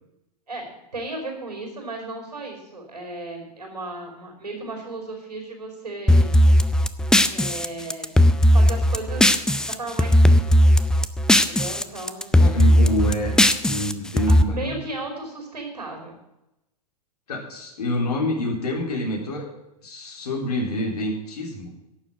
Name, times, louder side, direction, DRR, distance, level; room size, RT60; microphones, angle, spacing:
voice 1, 0.9-6.4 7.2-8.1 8.5-9.4 9.7-10.6 11.4-12.5 14.3-16.2, right 2 dB, 90° right, 2 dB, 5.1 m, -35 dB
sound 1, 6.1-9.7 10.0-11.8 12.1-14.4, equal, 5° left, 0.5 m, -17 dB
voice 2, 12.3-13.3 13.6-14.7 17.3-19.5 19.8-21.7, left 1 dB, 75° left, 1 dB, 3.6 m, -27 dB
11.5 x 7.4 x 8.9 m, 0.89 s
figure-of-eight pair, 95°, 20 cm